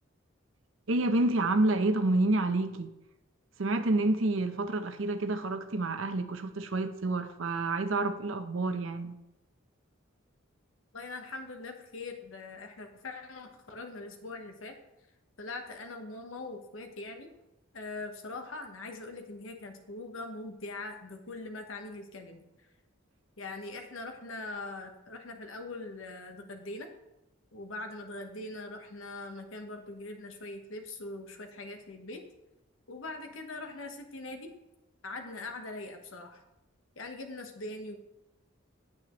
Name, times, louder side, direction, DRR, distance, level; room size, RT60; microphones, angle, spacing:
voice 1, 0.9-2.9 3.6-9.2, right 2 dB, 80° right, 0.7 m, -28 dB
voice 2, 10.9-14.7 15.4-17.3 17.7-22.4 23.4-26.9 27.5-32.2 32.9-34.5 35.0-36.4 37.0-38.0, left 2 dB, 85° left, 1.2 m, -42 dB
8.7 x 8.5 x 3.1 m
head